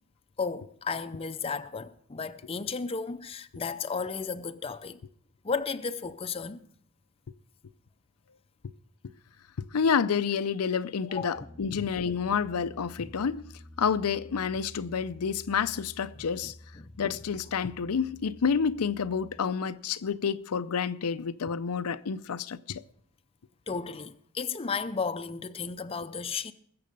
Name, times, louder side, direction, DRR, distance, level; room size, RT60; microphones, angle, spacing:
voice 1, 0.4-5.0 5.4-6.6 11.1-11.5 16.2-16.9 23.7-26.5, left 5 dB, 25° left, 0.5 m, -34 dB
voice 2, 9.7-13.4 13.8-16.5 17.0-22.8, left 6 dB, 90° left, 0.5 m, -29 dB
Piano, 11.3-19.4, left 1 dB, 25° right, 2.6 m, -50 dB
20.5 x 7.7 x 5.3 m
head